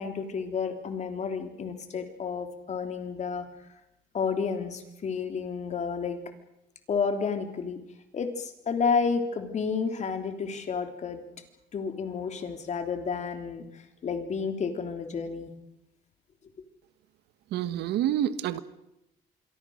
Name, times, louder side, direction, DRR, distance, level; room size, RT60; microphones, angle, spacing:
voice 1, 0.0-3.5 4.1-6.2 6.9-7.8 8.1-11.2 11.7-15.5, left 5 dB, 45° left, 6 dB, 3.4 m, -31 dB
voice 2, 17.5-18.6, right 11 dB, 80° right, 13 dB, 1.5 m, -27 dB
26.5 x 23.5 x 6.5 m, 0.88 s
cardioid pair, 110°, 17 cm